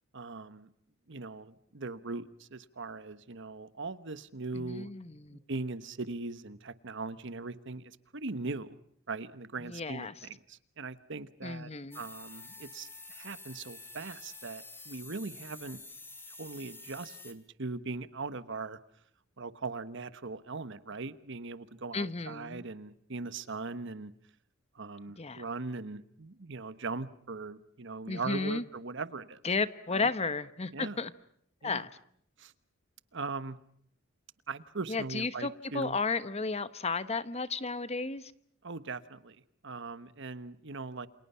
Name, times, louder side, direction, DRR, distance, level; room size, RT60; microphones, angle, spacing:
voice 1, 0.1-0.7 1.1-4.9 5.3-8.8 9.1-11.7 11.9-15.8 16.3-18.8 19.4-24.1 24.7-29.4 29.9-30.1 30.7-31.0 31.6-31.8 32.4-32.5 33.1-33.6 34.5-36.0 38.6-41.1, right 3 dB, 60° right, 14 dB, 1.2 m, -40 dB
voice 2, 4.5-5.4 9.6-10.1 11.4-12.0 21.9-22.6 25.2-25.4 28.1-28.6 29.4-31.1 31.6-31.9 34.9-38.3, left 4 dB, 30° left, 14 dB, 1.1 m, -33 dB
sound 1, 11.9-17.3, left 3 dB, 10° left, 2.9 m, -48 dB
28.5 x 27.5 x 5.7 m, 0.65 s
head